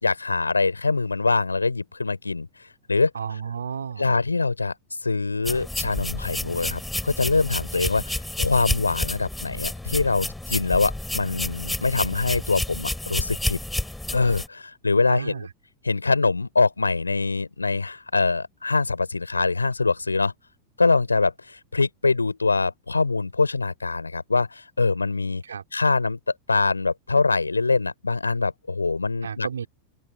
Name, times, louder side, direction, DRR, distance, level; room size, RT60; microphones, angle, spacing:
voice 1, 0.0-2.5 2.9-3.1 4.0-4.7 5.0-13.6 14.1-15.5 15.8-20.3 20.8-25.4 25.7-26.2 26.5-29.5, left 3 dB, 80° left, 3.6 m, -24 dB
voice 2, 3.1-4.1 15.1-15.5 25.4-25.6 29.2-29.7, right 7 dB, 70° right, 2.9 m, -32 dB
sound 1, 5.5-14.5, left 1 dB, 5° left, 6.0 m, -30 dB
open air
figure-of-eight pair, 90°, 0 cm